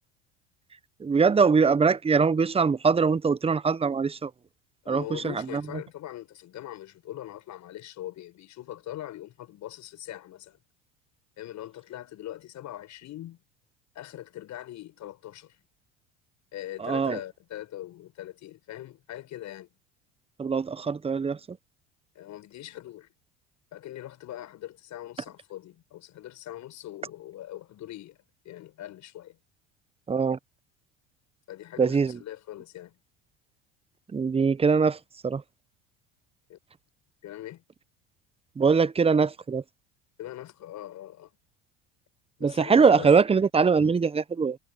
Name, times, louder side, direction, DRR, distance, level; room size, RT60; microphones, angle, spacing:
voice 1, 1.0-4.3 4.9-5.6 16.8-17.2 20.4-21.6 30.1-30.4 31.8-32.2 34.1-35.4 38.6-39.6 42.4-44.6, right 5 dB, 15° right, 0.8 m, -22 dB
voice 2, 4.8-10.6 11.4-13.4 13.9-15.6 16.5-19.7 22.1-23.1 23.7-28.2 28.4-29.4 31.5-33.0 36.5-36.6 37.2-37.6 40.2-41.3 42.4-43.1, left 13 dB, 55° left, 6.8 m, -41 dB
supercardioid pair, 90°, 35 cm